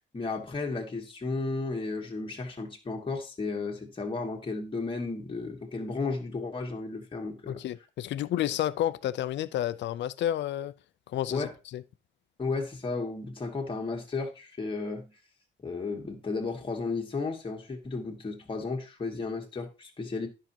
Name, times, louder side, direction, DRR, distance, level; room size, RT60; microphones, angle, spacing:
voice 1, 0.1-7.6 11.3-11.5 12.4-15.1 15.6-20.3, left 3 dB, 25° left, 1.7 m, -34 dB
voice 2, 7.5-10.7 11.1-11.8, left 12 dB, 65° left, 0.5 m, -30 dB
10.5 x 5.7 x 2.8 m
cardioid pair, 90°, 20 cm